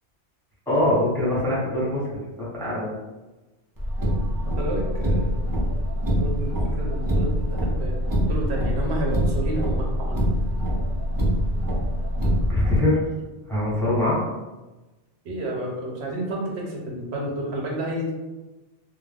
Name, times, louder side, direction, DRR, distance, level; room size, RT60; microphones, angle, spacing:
voice 1, 0.7-2.0 2.4-3.0 12.5-13.0 13.5-14.2, left 1 dB, 5° left, -9 dB, 0.8 m, -23 dB
Car, 3.8-12.8, equal, 30° right, 0.3 m, -24 dB
voice 2, 4.6-5.3 6.1-8.0 8.3-10.3 15.2-18.1, right 1 dB, 70° right, -2 dB, 0.9 m, -30 dB
2.3 x 2.0 x 3.3 m, 1.1 s
omnidirectional pair, 1.2 m